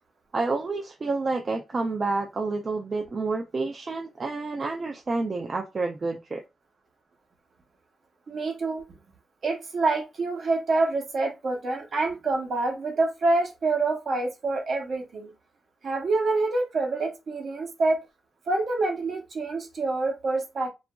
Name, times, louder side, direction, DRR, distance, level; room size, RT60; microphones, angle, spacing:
voice 1, 0.3-6.4, right 3 dB, 35° right, 0.3 m, -29 dB
voice 2, 8.3-9.0 9.4-15.3 15.8-18.0 18.5-20.7, right 3 dB, 50° right, 0.8 m, -26 dB
2.8 x 2.3 x 2.2 m
cardioid pair, 125°, 0 cm